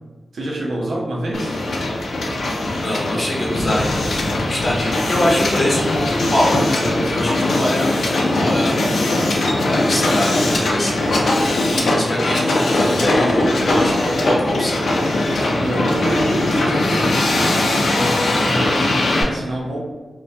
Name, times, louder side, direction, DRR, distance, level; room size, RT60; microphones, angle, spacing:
voice 1, 0.3-1.6 11.6-12.1 15.6-19.8, right 1 dB, 90° right, -3 dB, 0.5 m, -26 dB
Hiss, 1.3-19.2, left 2 dB, 85° left, 0.4 m, -20 dB
voice 2, 2.6-9.1 9.6-11.0 11.9-14.8, left 1 dB, 45° left, -4 dB, 0.7 m, -23 dB
2.2 x 2.2 x 2.6 m, 1.3 s
wide cardioid pair, 105°, 0 cm